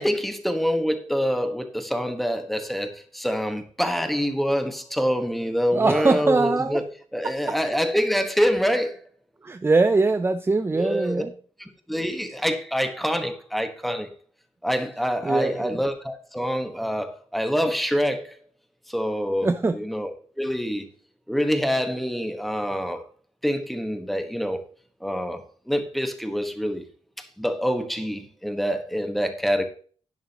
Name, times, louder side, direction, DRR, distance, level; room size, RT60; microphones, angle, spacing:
voice 1, 0.0-6.8 7.1-9.0 10.7-11.2 11.6-14.1 14.6-18.4 18.9-20.1 20.4-20.9 21.3-23.0 23.4-24.6 25.0-26.8 27.2-29.7, equal, ahead, 1.3 m, -26 dB
voice 2, 5.7-6.8 7.2-7.6 9.4-11.3 15.2-15.8 19.4-19.8, right 3 dB, 20° right, 0.5 m, -22 dB
11.5 x 10.0 x 2.9 m
wide cardioid pair, 140°, 12 cm